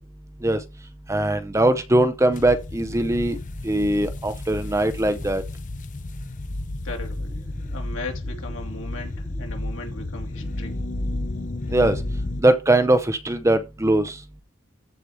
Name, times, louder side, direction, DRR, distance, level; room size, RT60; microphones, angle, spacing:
voice 1, 1.1-3.4 3.6-5.4 11.7-12.0 12.4-14.2, right 1 dB, 15° right, 0.7 m, -21 dB
sound 1, 2.3-12.4, left 1 dB, 35° left, 0.7 m, -32 dB
voice 2, 6.8-7.4 7.7-10.8, left 2 dB, 65° left, 2.5 m, -37 dB
14.5 x 4.9 x 3.6 m
head